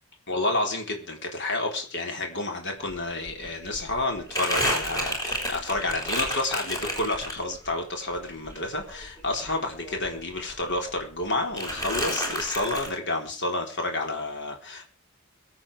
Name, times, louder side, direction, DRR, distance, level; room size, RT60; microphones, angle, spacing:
voice 1, 0.3-14.8, left 2 dB, 55° left, 3 dB, 4.0 m, -30 dB
Crumpling crinkling, 2.9-3.0 3.3-7.7 8.1-10.2 10.5-11.2 11.6-12.9, equal, 15° left, 6.2 m, -31 dB
23.0 x 8.8 x 4.9 m, 0.36 s
head